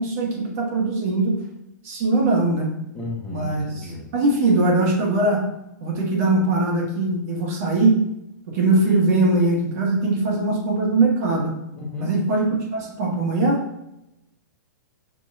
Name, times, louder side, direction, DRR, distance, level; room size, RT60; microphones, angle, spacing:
voice 1, 0.0-1.4 1.8-2.7 3.3-5.4 5.8-8.0 8.5-11.5 12.0-13.6, right 2 dB, 55° right, -1 dB, 1.5 m, -21 dB
voice 2, 2.9-4.1 11.8-12.1, left 2 dB, 10° left, -6 dB, 1.2 m, -33 dB
6.2 x 2.8 x 2.6 m, 0.87 s
hypercardioid pair, 135°, 10 cm